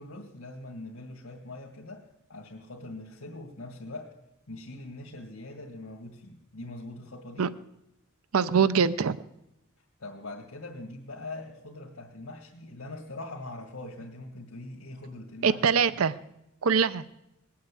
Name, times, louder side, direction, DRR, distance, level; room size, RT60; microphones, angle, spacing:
voice 1, 0.0-4.2 4.5-7.5 10.0-15.8, left 2 dB, 85° left, -1 dB, 2.2 m, -42 dB
voice 2, 8.3-9.1 15.4-16.2 16.6-17.0, right 6 dB, 85° right, 16 dB, 0.6 m, -23 dB
20.0 x 8.4 x 8.4 m, 0.87 s
head